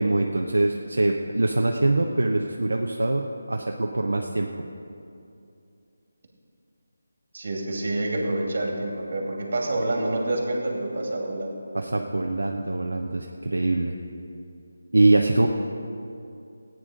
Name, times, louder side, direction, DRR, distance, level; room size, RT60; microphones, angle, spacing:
voice 1, 0.0-4.5 11.7-14.0 14.9-15.5, right 2 dB, 80° right, 1 dB, 0.8 m, -23 dB
voice 2, 7.3-11.6, right 2 dB, 55° right, 0 dB, 2.6 m, -27 dB
15.0 x 9.4 x 5.2 m, 2.6 s
figure-of-eight pair, 160°, 0 cm